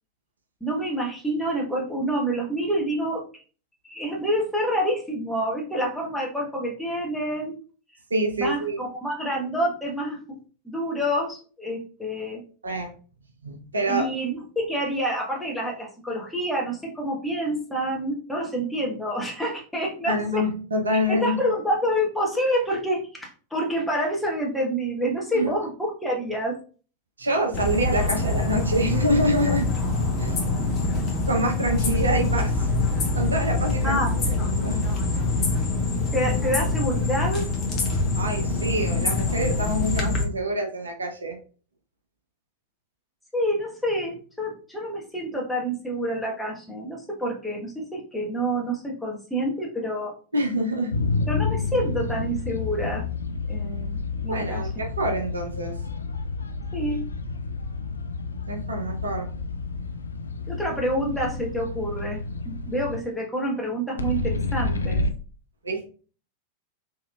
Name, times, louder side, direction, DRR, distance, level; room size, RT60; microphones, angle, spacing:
voice 1, 0.6-3.2 3.8-7.6 8.4-10.2 10.6-12.4 13.9-20.4 21.1-26.5 33.8-34.2 36.1-37.4 43.3-50.1 51.3-53.0 53.5-54.6 56.7-57.0 60.5-65.0, equal, ahead, -2 dB, 1.2 m, -27 dB
voice 2, 8.1-8.8 12.6-12.9 13.4-14.1 20.0-21.4 25.3-25.5 27.2-29.7 30.2-30.4 31.3-32.7 33.1-35.3 38.1-41.4 50.3-50.9 54.3-55.7 58.5-59.3 65.6-65.9, equal, 75° right, 2 dB, 0.7 m, -26 dB
sound 1, 27.5-40.2, left 3 dB, 30° left, 1.0 m, -25 dB
sound 2, 50.9-63.0 64.0-65.1, left 3 dB, 75° left, 0.3 m, -29 dB
3.7 x 3.0 x 2.3 m, 0.38 s
figure-of-eight pair, 90°, 0 cm